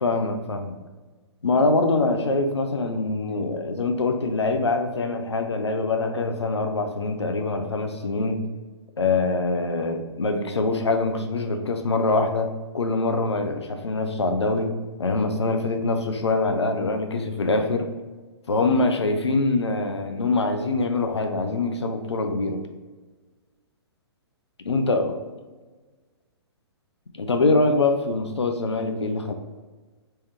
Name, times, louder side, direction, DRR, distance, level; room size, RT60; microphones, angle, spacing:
voice 1, 0.0-0.7 1.4-8.4 9.0-14.7 15.0-17.9 18.5-22.6 24.7-25.1 27.2-29.3, left 3 dB, 85° left, 5 dB, 0.5 m, -24 dB
3.3 x 3.3 x 2.9 m, 1.3 s
figure-of-eight pair, 125°, 14 cm